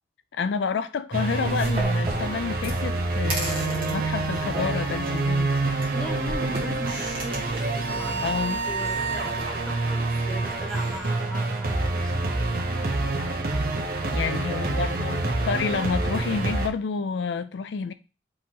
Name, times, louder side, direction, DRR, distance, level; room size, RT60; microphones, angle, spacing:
voice 1, 0.3-5.5 8.2-8.6 14.1-17.9, left 5 dB, 70° left, 0.4 m, -29 dB
sound 1, 1.1-16.7, right 2 dB, 50° right, 0.9 m, -27 dB
sound 2, 1.3-11.1, right 1 dB, 30° right, 1.4 m, -37 dB
voice 2, 5.9-12.4, right 1 dB, 5° left, 0.8 m, -39 dB
4.6 x 3.1 x 3.6 m
head